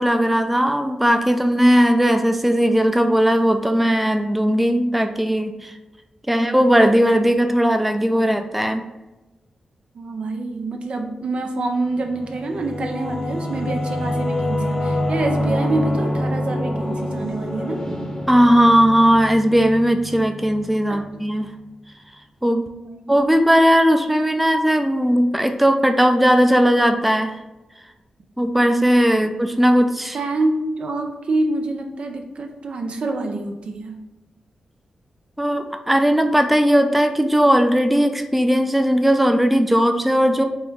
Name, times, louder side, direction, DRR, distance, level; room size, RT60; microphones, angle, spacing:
voice 1, 0.0-5.7 6.3-8.9 18.3-21.5 22.4-22.7 23.1-27.4 28.4-30.2 35.4-40.4, equal, 5° right, 6 dB, 0.4 m, -17 dB
voice 2, 9.9-17.9 20.9-21.0 22.7-23.2 30.1-34.0, right 2 dB, 65° right, 3 dB, 0.6 m, -26 dB
Singing / Musical instrument, 11.9-21.1, left 1 dB, 25° left, 0.8 m, -26 dB
4.3 x 2.2 x 3.6 m, 1.0 s
supercardioid pair, 45°, 2 cm